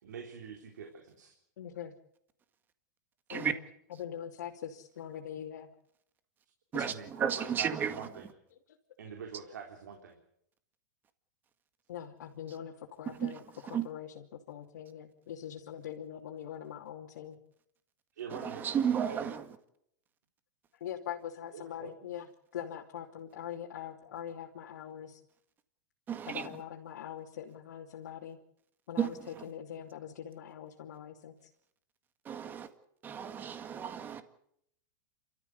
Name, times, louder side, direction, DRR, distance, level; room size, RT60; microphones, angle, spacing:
voice 1, 0.0-1.3 6.8-8.3 9.0-10.2 18.2-19.3 21.8-21.9, right 7 dB, 90° right, 3.8 m, -44 dB
voice 2, 1.6-1.9 3.3-3.6 3.9-5.7 6.7-7.0 8.7-8.8 11.9-13.4 13.7-17.4 20.7-25.2 26.3-28.4 28.9-31.5, left 9 dB, 75° left, 2.8 m, -43 dB
voice 3, 6.7-8.1 13.2-13.3 13.7-13.8 18.3-19.4 26.1-26.5 29.0-29.3 32.3-32.7 33.0-34.2, right 8 dB, 20° right, 1.8 m, -33 dB
28.5 x 14.0 x 8.2 m
supercardioid pair, 150°, 9 cm